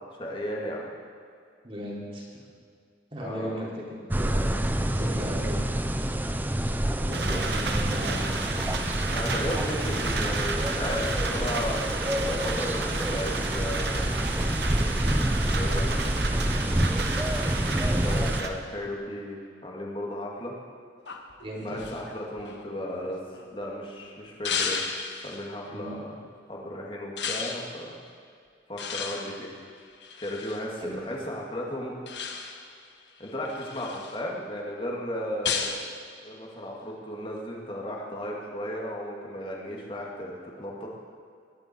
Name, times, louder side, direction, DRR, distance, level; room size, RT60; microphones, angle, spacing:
voice 1, 0.2-0.9 3.2-3.7 9.1-11.8 12.3-14.0 15.3-15.9 17.9-20.5 21.6-23.2 23.5-26.1 26.5-28.0 28.7-29.5 30.2-31.9 33.2-40.9, equal, 30° left, -2 dB, 2.4 m, -35 dB
voice 2, 1.6-2.2 3.1-4.5 4.9-5.6 7.0-8.3 21.4-21.8 25.7-26.0 30.8-31.0, equal, 30° right, -4 dB, 3.3 m, -36 dB
sound 1, 4.1-18.4, right 1 dB, 10° right, 0.6 m, -28 dB
sound 2, 7.1-18.5, right 3 dB, 60° right, 1.2 m, -32 dB
sound 3, 21.1-23.7 24.4-25.4 27.2-27.7 28.8-30.6 32.1-32.7 33.2-34.2 35.4-35.9, left 6 dB, 70° left, 1.4 m, -34 dB
21.0 x 12.0 x 4.7 m, 2.3 s
head